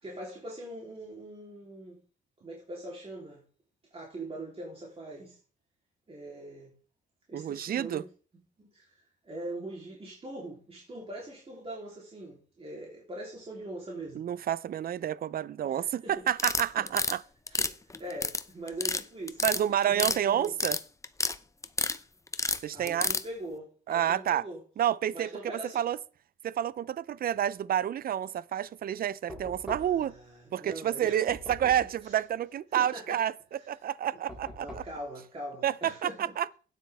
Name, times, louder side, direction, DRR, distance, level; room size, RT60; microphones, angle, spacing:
voice 1, 0.0-2.0 2.4-3.4 3.9-5.4 6.1-6.7 7.3-8.1 8.6-14.3 15.6-16.2 16.6-16.9 17.5-20.5 22.7-24.6 25.1-25.8 29.8-31.3 32.0-32.2 32.7-33.2 33.6-33.7 34.6-36.3, right 1 dB, 30° right, 3.4 m, -42 dB
voice 2, 7.3-8.0 14.2-17.2 19.4-20.8 22.6-23.1 23.9-24.4 24.8-26.0 26.4-30.1 30.5-33.3 33.7-34.8 35.6-36.5, right 10 dB, 50° right, 0.5 m, -29 dB
sound 1, 16.3-17.1 17.5-18.4 18.7-19.0 19.3-20.2 20.4-21.3 21.6-22.0 22.3-23.2, left 3 dB, 15° left, 0.7 m, -29 dB
Knock, 29.3-30.2 31.3-32.0 34.3-35.0, equal, 5° right, 3.6 m, -43 dB
12.5 x 9.3 x 3.5 m
cardioid pair, 90°, 20 cm